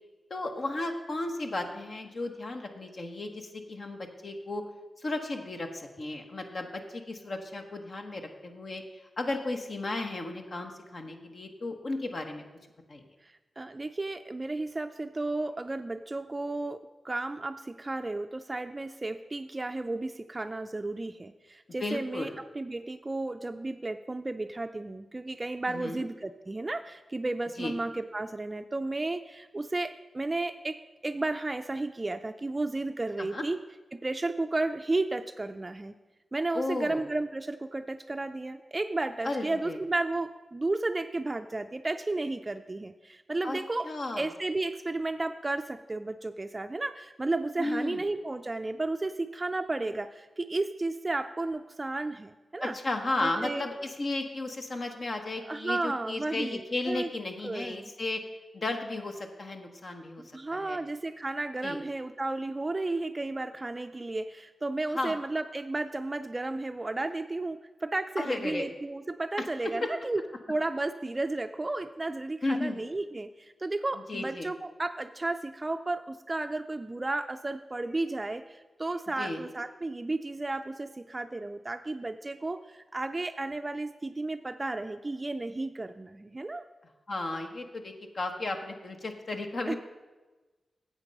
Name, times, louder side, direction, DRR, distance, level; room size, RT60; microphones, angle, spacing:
voice 1, 0.3-4.6 5.0-8.8 9.2-12.4 12.9-13.0 21.8-22.4 25.7-26.0 27.6-27.8 33.2-33.4 36.5-37.0 39.2-39.8 43.4-43.6 43.8-44.3 47.6-48.0 52.6-58.2 58.5-60.2 60.5-60.8 61.6-61.8 64.9-65.1 68.2-68.7 69.4-69.9 72.4-72.9 74.1-74.5 79.2-79.4 87.1-89.8, left 2 dB, 60° left, 4 dB, 1.1 m, -34 dB
voice 2, 13.2-22.3 22.5-30.8 31.0-33.6 33.9-35.9 36.3-43.9 44.2-52.8 53.2-53.7 55.5-56.6 56.9-57.1 57.4-57.9 60.2-70.2 70.5-86.6 89.7-89.8, right 2 dB, 30° right, 8 dB, 0.4 m, -33 dB
8.9 x 7.6 x 5.3 m, 1.2 s
cardioid pair, 55°, 0 cm